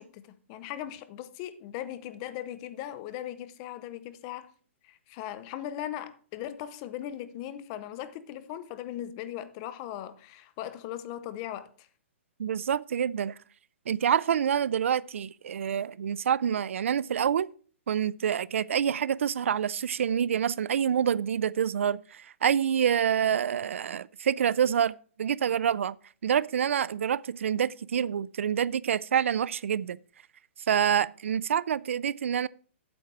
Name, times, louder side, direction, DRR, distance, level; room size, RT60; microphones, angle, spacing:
voice 1, 0.0-4.5 4.8-11.9, left 11 dB, 25° left, 0.7 m, -39 dB
voice 2, 12.4-13.4 13.9-17.5 17.9-26.0 26.2-30.0 30.7-32.5, right 8 dB, 80° right, 0.4 m, -27 dB
8.6 x 7.6 x 4.6 m
hypercardioid pair, 170°, 7 cm